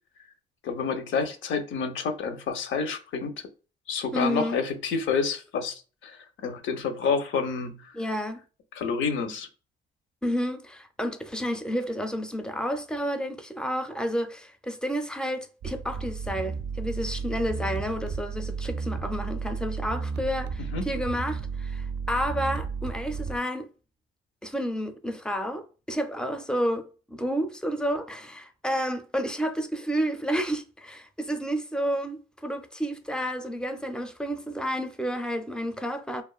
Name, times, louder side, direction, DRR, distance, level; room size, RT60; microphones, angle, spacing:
voice 1, 0.6-3.5 3.9-7.9 8.7-9.5 20.7-20.9, left 5 dB, 75° left, 0.6 m, -29 dB
voice 2, 4.1-4.6 7.9-8.4 10.2-23.7 24.4-36.2, equal, 5° left, 0.4 m, -30 dB
sound 1, 15.6-23.4, right 5 dB, 60° right, 0.4 m, -33 dB
2.5 x 2.3 x 2.3 m
cardioid pair, 90°, 20 cm